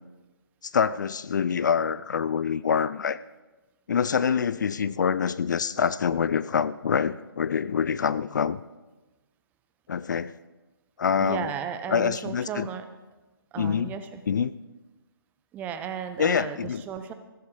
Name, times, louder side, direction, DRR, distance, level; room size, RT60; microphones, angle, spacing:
voice 1, 0.6-3.2 3.9-8.6 9.9-10.3 11.0-11.5 11.9-12.7 13.6-13.9 14.3-14.5 16.2-16.8, left 7 dB, 50° left, 17 dB, 0.5 m, -25 dB
voice 2, 11.2-12.9 13.5-14.2 15.5-17.1, right 8 dB, 15° right, 9 dB, 0.8 m, -34 dB
15.0 x 14.5 x 4.9 m, 1.2 s
figure-of-eight pair, 140°, 13 cm